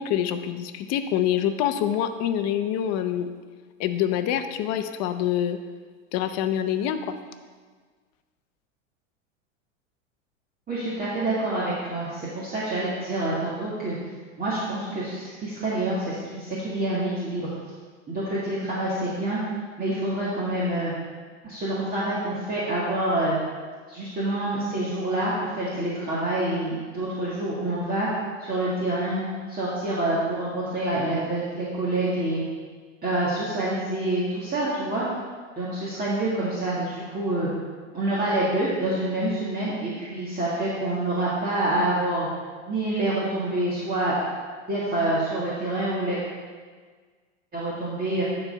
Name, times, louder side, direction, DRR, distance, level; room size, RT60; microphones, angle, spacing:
voice 1, 0.0-3.3 3.8-5.6 6.1-7.1, left 10 dB, 45° left, 9 dB, 0.7 m, -26 dB
voice 2, 10.7-14.0 14.4-17.5 18.1-19.4 19.8-20.9 21.4-23.4 23.9-28.1 28.4-29.2 29.5-32.4 33.0-35.0 35.6-37.5 37.9-42.3 42.7-44.2 44.7-46.2 47.5-48.2, right 1 dB, 25° right, -8 dB, 2.0 m, -27 dB
10.5 x 4.3 x 5.4 m, 1.5 s
hypercardioid pair, 110°, 37 cm